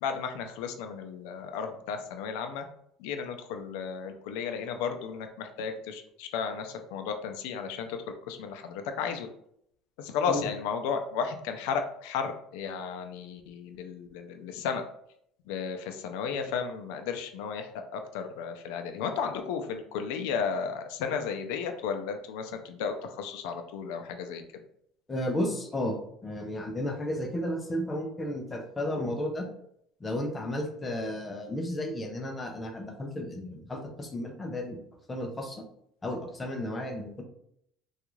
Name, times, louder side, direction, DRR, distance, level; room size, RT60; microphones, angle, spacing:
voice 1, 0.0-2.7 3.0-8.0 8.3-9.3 10.0-14.8 15.5-24.4, left 6 dB, 80° left, 6 dB, 0.4 m, -34 dB
voice 2, 25.1-26.0 26.2-29.5 30.0-34.8 35.1-35.6 36.0-37.2, left 1 dB, 15° left, 3 dB, 0.5 m, -33 dB
3.5 x 2.3 x 3.0 m, 0.71 s
cardioid pair, 160°, 0 cm